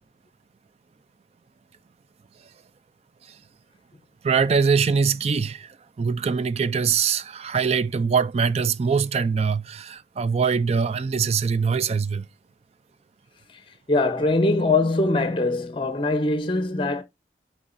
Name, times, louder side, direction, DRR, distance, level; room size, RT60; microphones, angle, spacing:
voice 1, 4.2-12.3, right 5 dB, 35° right, 0.3 m, -23 dB
voice 2, 13.9-17.0, left 2 dB, 30° left, 0.8 m, -22 dB
11.0 x 3.8 x 2.5 m
head